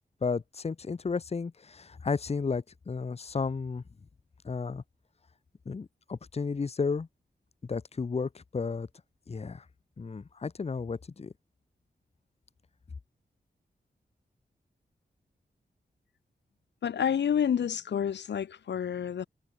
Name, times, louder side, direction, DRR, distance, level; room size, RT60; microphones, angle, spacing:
voice 1, 0.2-3.8 4.4-4.8 5.7-7.1 7.6-8.9 9.3-9.6 10.0-11.3, left 4 dB, 35° left, 0.7 m, -33 dB
voice 2, 16.8-19.3, left 8 dB, 85° left, 0.7 m, -29 dB
wide cardioid pair, 85°, 18 cm